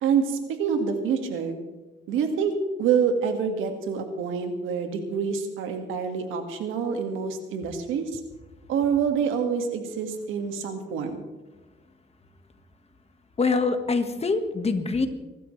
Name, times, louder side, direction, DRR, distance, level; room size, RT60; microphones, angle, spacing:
voice 1, 0.0-1.6 2.1-2.5 2.8-8.2 8.7-11.2, right 6 dB, 90° right, 5 dB, 2.0 m, -26 dB
voice 2, 13.4-15.1, left 4 dB, 30° left, 7 dB, 1.6 m, -24 dB
25.0 x 12.5 x 3.3 m, 1.2 s
cardioid pair, 90°, 20 cm